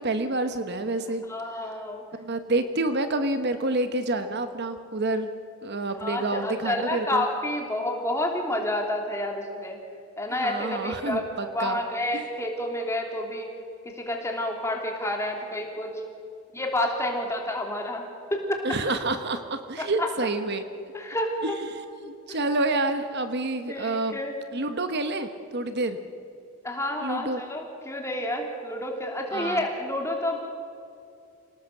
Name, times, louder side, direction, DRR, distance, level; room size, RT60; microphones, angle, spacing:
voice 1, 0.0-1.2 2.2-5.3 5.6-7.2 10.4-11.8 12.1-12.3 18.6-20.6 21.4-24.2 24.5-26.0 27.0-27.4 29.3-29.6, right 2 dB, 50° right, 9 dB, 1.1 m, -28 dB
voice 2, 1.3-2.0 6.0-9.8 10.2-11.2 11.5-13.5 14.0-15.9 16.5-18.6 19.8-20.1 20.9-21.6 23.7-24.3 26.6-30.4, left 1 dB, 10° left, 1 dB, 3.1 m, -29 dB
27.5 x 18.0 x 7.8 m, 2.6 s
head